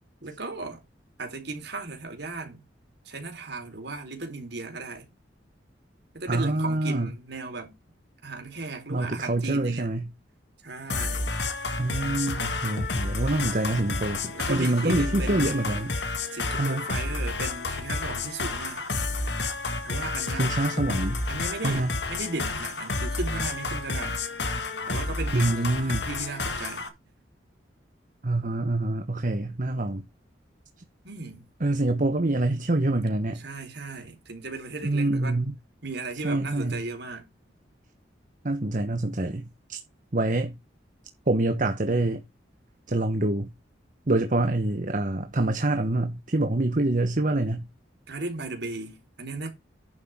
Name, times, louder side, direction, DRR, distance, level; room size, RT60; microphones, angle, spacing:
voice 1, 0.2-0.8 1.2-2.6 3.0-5.1 6.1-7.7 8.2-9.9 10.6-11.3 14.2-15.7 16.3-18.9 19.8-20.5 21.3-24.2 24.9-26.9 31.0-31.5 33.4-35.4 35.8-37.3 48.1-49.5, right 3 dB, 60° right, 4.1 m, -36 dB
voice 2, 6.3-7.1 8.9-10.1 11.8-15.9 16.6-16.8 20.4-21.2 21.6-21.9 25.3-26.1 28.2-30.1 31.6-33.4 34.8-35.5 36.2-36.8 38.4-39.8 40.1-40.6 41.3-42.2 42.9-43.5 44.1-47.7, right 2 dB, 45° right, 1.1 m, -26 dB
sound 1, 10.9-26.9, left 3 dB, 65° left, 2.0 m, -30 dB
10.0 x 7.9 x 3.7 m
head